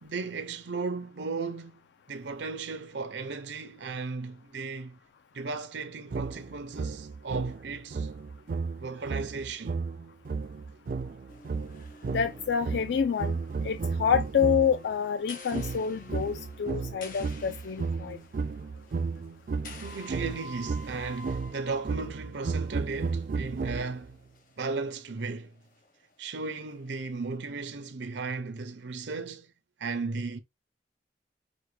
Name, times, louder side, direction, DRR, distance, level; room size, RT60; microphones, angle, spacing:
voice 1, 0.0-5.0 5.3-8.1 8.8-9.7 19.8-24.1 24.6-25.5 26.2-29.5 29.8-30.4, right 4 dB, 85° right, 0.7 m, -35 dB
sound 1, 6.1-14.9 15.5-24.2, right 4 dB, 50° right, 0.3 m, -34 dB
sound 2, 11.3-18.4 18.8-19.0 19.6-23.0 23.2-23.3 24.4-24.5 26.7-26.8, left 2 dB, 50° left, 0.9 m, -49 dB
voice 2, 12.1-13.4 13.6-18.2, left 7 dB, 75° left, 0.4 m, -28 dB
5.9 x 2.2 x 3.2 m
head